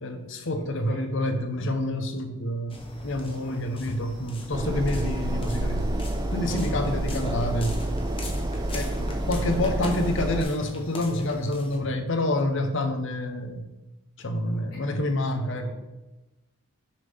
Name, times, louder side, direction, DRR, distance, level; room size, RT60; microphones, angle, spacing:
voice 1, 0.0-5.9 6.3-7.8 8.7-13.7 14.2-15.7, left 1 dB, 55° left, 7 dB, 0.8 m, -28 dB
voice 2, 0.5-1.1 3.3-3.5 6.6-6.9 14.5-14.8 15.5-15.7, left 1 dB, 90° left, -9 dB, 2.5 m, -49 dB
sound 1, 2.7-11.8, left 1 dB, 25° left, 0.9 m, -41 dB
sound 2, 4.5-10.4, right 1 dB, 20° right, 0.4 m, -28 dB
6.5 x 3.7 x 5.5 m, 1.0 s
head